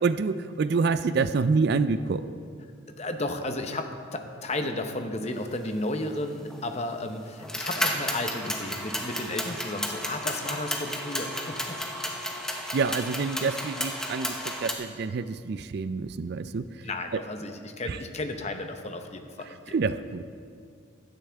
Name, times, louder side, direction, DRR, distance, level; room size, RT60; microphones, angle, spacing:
voice 1, 0.0-2.2 12.7-16.7 17.1-17.2 17.9-18.0 19.7-20.2, right 4 dB, 55° right, 13 dB, 0.4 m, -27 dB
voice 2, 2.9-11.8 16.8-19.7, left 2 dB, 30° left, 6 dB, 0.8 m, -33 dB
sound 1, 6.5-6.6 7.4-14.7, equal, 5° left, 0.9 m, -32 dB
16.0 x 12.0 x 3.5 m, 2.2 s
head